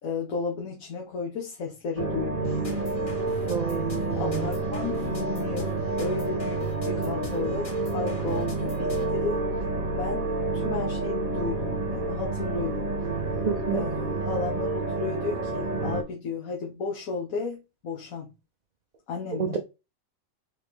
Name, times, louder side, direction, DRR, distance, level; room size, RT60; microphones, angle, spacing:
voice 1, 0.0-2.8 3.4-3.5 4.2-9.4 10.0-12.9 13.7-18.3 19.1-19.6, left 4 dB, 85° left, 1.4 m, -33 dB
sound 1, 2.0-16.0, right 3 dB, 90° right, 1.6 m, -29 dB
sound 2, 2.4-9.3, left 3 dB, 40° left, 1.2 m, -42 dB
voice 2, 3.5-4.5 13.4-13.8 19.4-19.6, right 6 dB, 60° right, 0.4 m, -29 dB
4.6 x 3.1 x 3.5 m
omnidirectional pair, 1.4 m